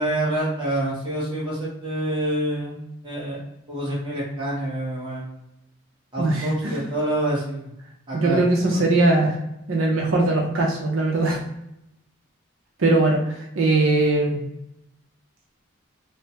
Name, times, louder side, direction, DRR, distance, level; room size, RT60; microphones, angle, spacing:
voice 1, 0.0-3.4 3.7-5.4 6.1-7.7 8.1-8.4 8.7-8.8, right 1 dB, 25° right, -6 dB, 1.0 m, -27 dB
voice 2, 6.2-6.8 8.1-9.4 9.7-11.4 12.8-13.2 13.6-14.4, right 2 dB, 80° right, 0 dB, 0.6 m, -20 dB
3.1 x 2.1 x 2.8 m, 0.84 s
head